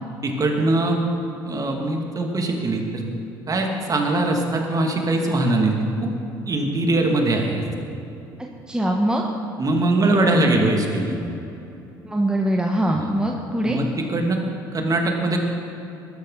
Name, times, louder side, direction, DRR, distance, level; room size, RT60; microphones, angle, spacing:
voice 1, 0.2-1.0 1.4-3.0 3.5-5.7 6.0-6.1 6.5-7.6 9.6-11.1 12.9-13.1 13.6-14.4 14.7-15.4, right 2 dB, 35° right, 2 dB, 2.6 m, -21 dB
voice 2, 8.7-9.2 12.0-13.8, right 1 dB, 5° right, 0 dB, 1.4 m, -22 dB
21.0 x 11.5 x 4.2 m, 2.9 s
hypercardioid pair, 55°, 11 cm